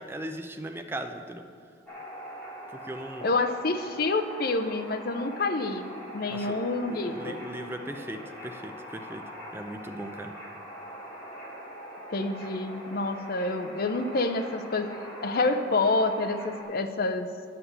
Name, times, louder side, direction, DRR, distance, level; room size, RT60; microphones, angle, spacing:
voice 1, 0.0-1.4 2.7-3.3 6.3-6.6 6.9-9.2 9.5-10.3, right 1 dB, 15° right, 5 dB, 0.5 m, -38 dB
sound 1, 1.9-16.6, equal, 10° left, 2.5 m, -43 dB
voice 2, 3.2-5.9 6.1-7.4 12.1-14.9 15.2-17.3, left 3 dB, 55° left, 8 dB, 0.6 m, -28 dB
9.5 x 6.0 x 8.0 m, 2.3 s
head